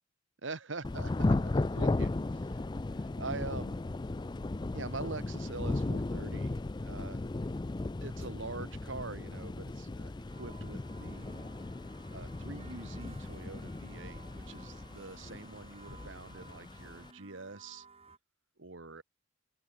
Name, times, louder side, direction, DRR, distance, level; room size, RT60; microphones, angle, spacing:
voice 1, 0.4-2.6 2.9-3.8 4.7-7.3 8.0-11.5 12.1-17.8 18.6-19.0, right 3 dB, 70° right, 1.6 m, -44 dB
Thunder / Rain, 0.8-17.1, left 2 dB, 20° left, 0.4 m, -36 dB
sound 1, 3.5-3.8 4.4-4.5 5.4-5.7 6.3-6.4 7.2-7.6 8.2-8.3 9.1-9.6 10.0-18.2, right 4 dB, 30° right, 4.5 m, -58 dB
open air
head